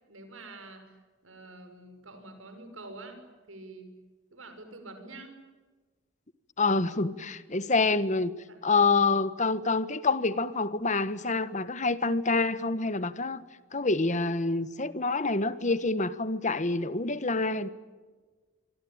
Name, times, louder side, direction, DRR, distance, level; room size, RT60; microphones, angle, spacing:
voice 1, 0.1-3.9 4.3-5.4 8.5-8.6, right 2 dB, 85° right, 7 dB, 6.2 m, -47 dB
voice 2, 6.6-8.3 8.6-13.4 13.7-17.7, left 3 dB, 40° left, 14 dB, 1.4 m, -27 dB
26.0 x 25.0 x 8.9 m, 1.4 s
head